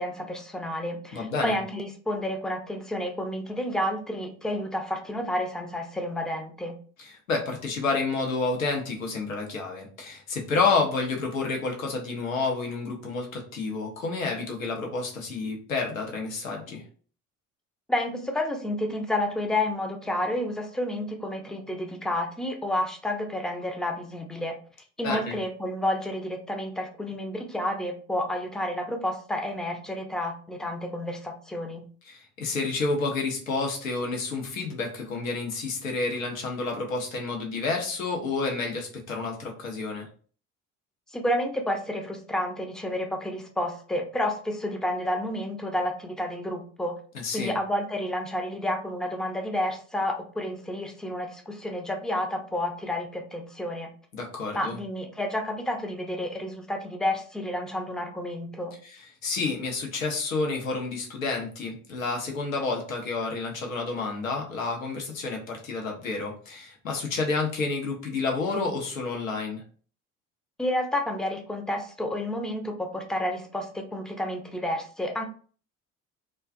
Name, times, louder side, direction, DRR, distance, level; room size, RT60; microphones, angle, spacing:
voice 1, 0.0-6.8 17.9-24.6 25.0-31.9 41.1-47.0 47.3-53.9 54.5-58.7 70.6-75.3, left 1 dB, ahead, 3 dB, 0.4 m, -30 dB
voice 2, 1.1-1.6 7.0-16.8 25.0-25.4 32.1-40.1 47.1-47.5 54.1-54.8 59.2-69.6, left 3 dB, 90° left, 2 dB, 0.6 m, -29 dB
2.4 x 2.2 x 2.4 m, 0.42 s
hypercardioid pair, 55°, 39 cm